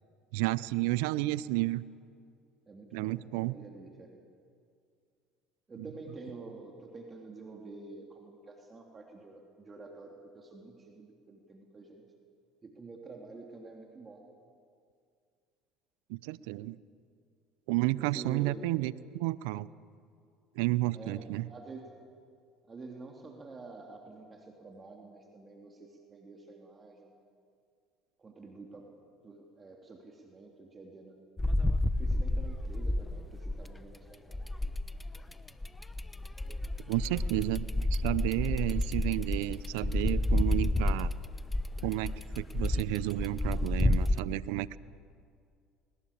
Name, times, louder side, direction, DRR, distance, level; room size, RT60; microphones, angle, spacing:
voice 1, 0.3-1.8 2.9-3.6 16.1-16.8 17.7-19.7 20.6-21.5 36.9-41.1 41.8-44.8, right 18 dB, 75° right, 19 dB, 0.6 m, -31 dB
voice 2, 2.7-4.1 5.7-12.0 12.6-14.3 18.0-18.7 20.9-21.8 22.7-27.1 28.2-28.9 29.2-31.2 32.0-34.4, right 3 dB, 30° right, 1 dB, 3.2 m, -48 dB
sound 1, 31.4-33.9 34.3-44.2, left 1 dB, 15° left, 1.0 m, -30 dB
20.0 x 20.0 x 8.6 m, 2.3 s
hypercardioid pair, 75°, 0 cm